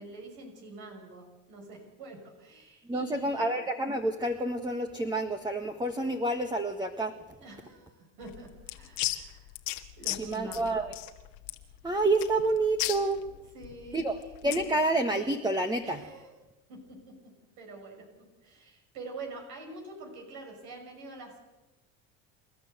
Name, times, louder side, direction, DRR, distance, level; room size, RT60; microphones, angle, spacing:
voice 1, 0.0-3.5 7.4-9.5 10.0-10.8 13.5-14.3 15.8-16.3 16.7-17.2 17.6-18.0 18.4-21.4, right 2 dB, 70° right, 2 dB, 6.1 m, -45 dB
voice 2, 2.9-7.1 10.2-10.9 11.8-13.2 13.9-14.2 14.4-16.0, right 2 dB, 10° right, 5 dB, 1.6 m, -28 dB
sound 1, 8.2-14.7, left 17 dB, 80° left, 1.8 m, -37 dB
28.5 x 12.0 x 7.9 m, 1.1 s
supercardioid pair, 85°, 38 cm